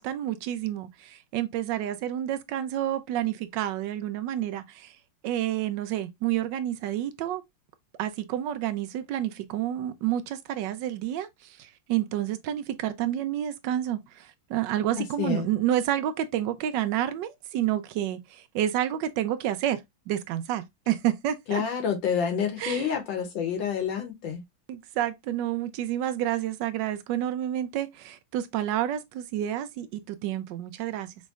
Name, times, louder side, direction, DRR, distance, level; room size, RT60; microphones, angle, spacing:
voice 1, 0.0-5.0 5.2-7.4 8.0-21.6 22.6-22.8 24.7-31.1, right 12 dB, 75° right, 1.1 m, -29 dB
voice 2, 15.0-15.5 21.5-24.4, left 7 dB, 70° left, 1.4 m, -28 dB
5.3 x 3.1 x 2.3 m
omnidirectional pair, 2.3 m